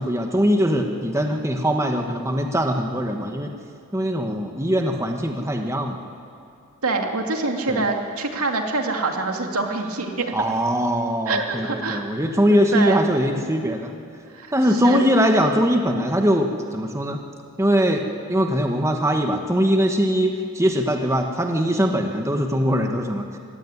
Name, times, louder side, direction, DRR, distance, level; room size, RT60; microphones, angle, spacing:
voice 1, 0.0-3.6 3.9-6.0 7.7-7.8 10.3-13.9 14.5-17.2 17.6-23.3, equal, 15° right, 4 dB, 1.3 m, -21 dB
voice 2, 6.8-10.3 11.3-12.0 12.5-13.0 14.3-15.1, right 3 dB, 75° right, 3 dB, 2.5 m, -25 dB
25.0 x 16.5 x 9.7 m, 2.5 s
head